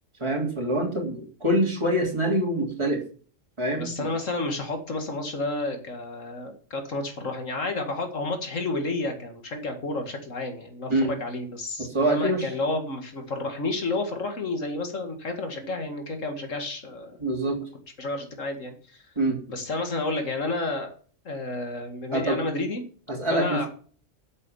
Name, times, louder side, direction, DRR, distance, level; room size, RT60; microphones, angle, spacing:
voice 1, 0.2-3.0 3.6-4.1 10.9-11.1 11.8-12.5 17.2-17.6 19.1-19.4 22.1-22.4 23.1-23.7, right 1 dB, 20° right, 0 dB, 3.4 m, -25 dB
voice 2, 3.7-17.2 18.0-19.0 19.5-20.9 21.3-22.8 23.3-23.7, left 2 dB, 80° left, 5 dB, 2.4 m, -31 dB
9.6 x 7.7 x 7.0 m, 0.42 s
omnidirectional pair, 1.3 m